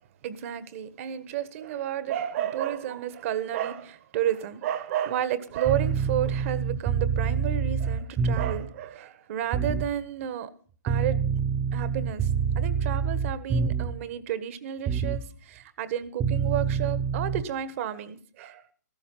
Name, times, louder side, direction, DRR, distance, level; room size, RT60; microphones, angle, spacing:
voice 1, 0.2-10.5 10.8-11.2 11.7-12.3 12.5-18.7, right 10 dB, 50° right, 1.5 m, -31 dB
sound 1, 5.6-8.7 9.5-9.9 10.9-14.0 14.9-15.3 16.2-17.4, right 6 dB, 20° right, 0.9 m, -27 dB
14.5 x 12.5 x 5.6 m
hypercardioid pair, 135°, 9 cm